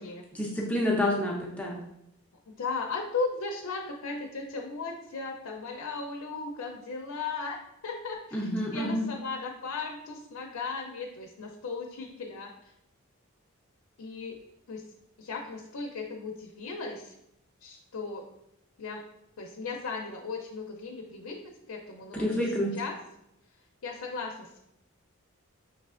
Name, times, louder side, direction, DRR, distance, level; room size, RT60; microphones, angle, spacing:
voice 1, 0.3-1.8 8.3-9.1 22.1-22.7, left 1 dB, 5° left, -3 dB, 0.5 m, -28 dB
voice 2, 2.6-7.6 7.8-8.4 8.7-12.7 14.0-14.4 14.7-14.8 15.2-17.2 17.6-18.3 18.8-19.0 19.4-21.4 21.7-22.5 22.8-23.0 23.8-24.6, left 4 dB, 85° left, 0 dB, 0.5 m, -36 dB
5.8 x 3.2 x 2.4 m, 0.82 s
head